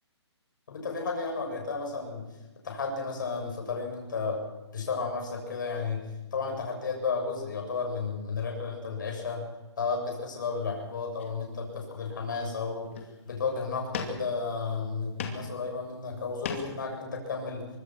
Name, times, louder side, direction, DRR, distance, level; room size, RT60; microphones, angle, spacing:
voice 1, 0.7-2.2 2.6-4.4 4.7-9.4 9.8-12.9 13.3-17.7, left 4 dB, 45° left, 1 dB, 7.5 m, -33 dB
sound 1, 10.5-10.7 11.2-11.9 12.4-12.5 12.8-13.3 13.9-14.6 14.9-15.5 15.9-16.9, left 6 dB, 25° left, 2.4 m, -39 dB
24.5 x 22.5 x 6.2 m, 1.1 s
hypercardioid pair, 175°, 15 cm